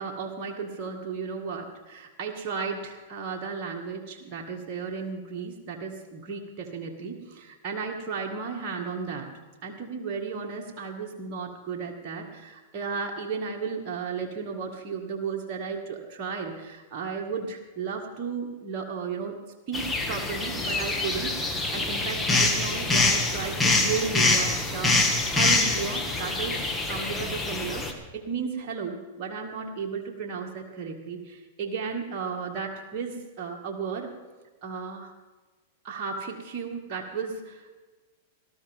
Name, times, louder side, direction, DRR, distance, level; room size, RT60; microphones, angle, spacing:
voice 1, 0.0-9.3 9.6-19.4 19.7-26.6 26.9-27.8 28.1-34.1 34.6-35.1 35.8-37.7, right 5 dB, 45° right, 0 dB, 2.2 m, -34 dB
sound 1, 19.7-27.9, left 2 dB, 10° left, 2.0 m, -25 dB
19.0 x 13.5 x 3.7 m, 1.3 s
hypercardioid pair, 110°, 0 cm